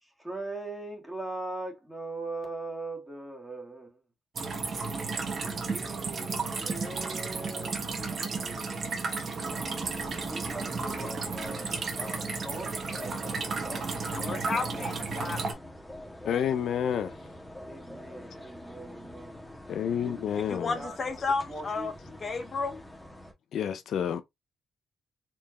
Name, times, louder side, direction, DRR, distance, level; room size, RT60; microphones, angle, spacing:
voice 1, 0.0-4.0 5.4-9.5 10.3-11.6 12.0-13.9 17.6-19.4 20.0-20.4 20.7-21.0 21.5-21.9, right 2 dB, 5° right, 1.8 m, -41 dB
sound 1, 4.3-15.5, right 4 dB, 45° right, 1.3 m, -33 dB
sound 2, 9.4-23.3, left 1 dB, 10° left, 1.4 m, -46 dB
voice 2, 14.1-15.4 20.5-22.8, left 4 dB, 35° left, 0.8 m, -32 dB
voice 3, 16.2-17.1 19.7-20.8 23.5-24.2, left 8 dB, 70° left, 0.5 m, -29 dB
4.5 x 3.1 x 2.9 m
cardioid pair, 115°, 0 cm